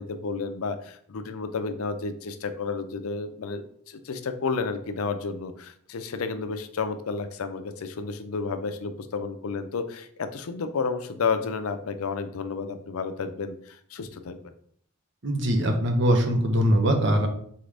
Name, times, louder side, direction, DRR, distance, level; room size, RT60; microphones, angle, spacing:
voice 1, 0.0-3.6 3.9-14.4, left 4 dB, 85° left, 10 dB, 0.5 m, -31 dB
voice 2, 15.2-17.3, equal, 55° right, 3 dB, 0.9 m, -22 dB
4.2 x 3.7 x 3.3 m, 0.62 s
head